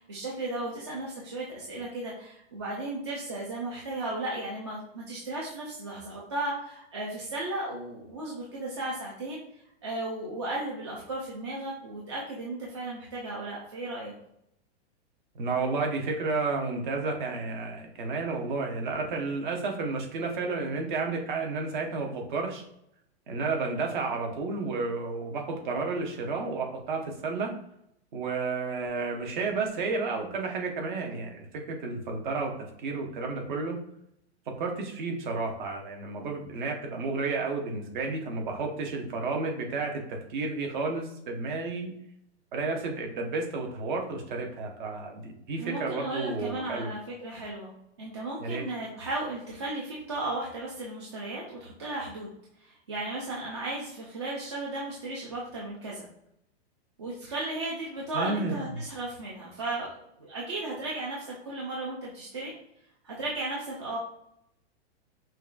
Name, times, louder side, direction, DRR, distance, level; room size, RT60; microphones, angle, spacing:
voice 1, 0.0-9.4 9.8-14.1 45.6-47.7 48.0-52.3 52.6-56.1 57.0-62.5 63.0-64.0, right 2 dB, 25° right, -5 dB, 0.4 m, -35 dB
voice 2, 15.3-22.6 23.3-27.5 28.1-32.5 32.8-33.8 34.6-41.9 42.5-46.9 48.4-48.7 58.1-58.8, right 3 dB, 45° right, 2 dB, 0.8 m, -31 dB
5.6 x 2.3 x 2.4 m, 0.78 s
supercardioid pair, 180°, 34 cm